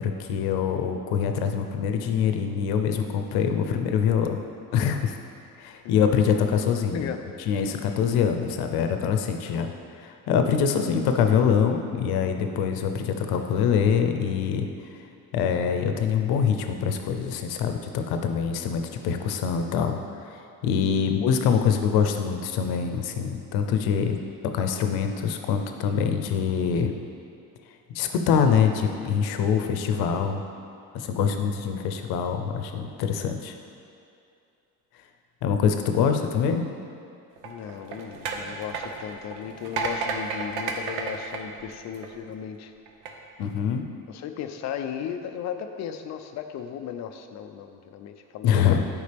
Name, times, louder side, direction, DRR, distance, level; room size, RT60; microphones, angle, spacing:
voice 1, 0.0-4.4 4.7-5.2 5.6-7.1 7.5-9.7 10.0-14.7 15.3-20.0 20.6-24.2 24.4-26.9 27.9-30.4 30.9-33.5 35.4-36.7 43.4-43.8 48.4-48.8, left 7 dB, 90° left, 6 dB, 0.7 m, -24 dB
voice 2, 6.9-7.3 20.8-21.2 36.2-36.3 37.4-42.7 44.1-48.6, left 8 dB, 50° left, 7 dB, 0.5 m, -36 dB
sound 1, 37.4-42.3 42.9-43.1, right 4 dB, 90° right, 0.8 m, -32 dB
9.6 x 5.1 x 3.4 m, 2.6 s
cardioid pair, 170°, 37 cm